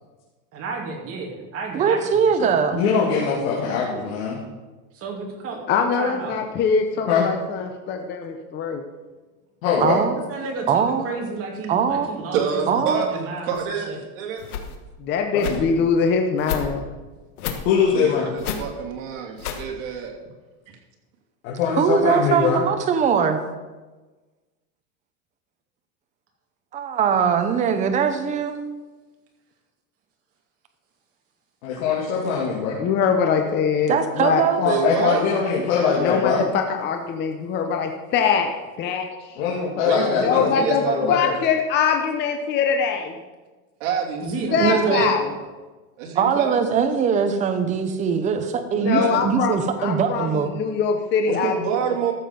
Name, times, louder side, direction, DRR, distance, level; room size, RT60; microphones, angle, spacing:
voice 1, 0.5-2.0 2.4-2.5 4.9-6.3 10.1-13.6 13.9-14.0 44.2-45.0, right 4 dB, 30° right, 0 dB, 2.6 m, -32 dB
voice 2, 1.7-2.8 9.8-10.1 10.7-11.1 11.7-12.1 12.7-13.0 21.8-23.4 26.7-28.5 33.9-34.6 44.5-45.0 46.1-50.5, right 6 dB, 15° right, 7 dB, 0.7 m, -21 dB
voice 3, 2.7-4.4 7.1-7.3 9.6-10.0 15.3-15.7 17.6-18.3 21.4-22.6 31.6-32.8 34.6-36.4 39.4-41.3, left 6 dB, 65° left, -4 dB, 2.6 m, -22 dB
voice 4, 5.7-8.8 15.0-16.8 32.8-34.4 36.0-38.5 38.8-39.4 40.2-43.1 44.5-45.3 48.8-51.5, left 6 dB, 25° left, 5 dB, 0.8 m, -23 dB
voice 5, 12.3-14.4 17.9-20.1 34.6-35.2 39.8-41.1 43.8-45.1 46.0-46.5 48.7-49.1 51.2-52.1, right 7 dB, 60° right, -1 dB, 2.8 m, -27 dB
sound 1, 13.5-13.6 14.4-14.8 15.4-15.6 16.4-16.6 17.4-17.6 18.4-18.6 19.4-19.6, left 8 dB, 85° left, 1.6 m, -30 dB
13.5 x 7.3 x 5.3 m, 1.2 s
supercardioid pair, 155°, 43 cm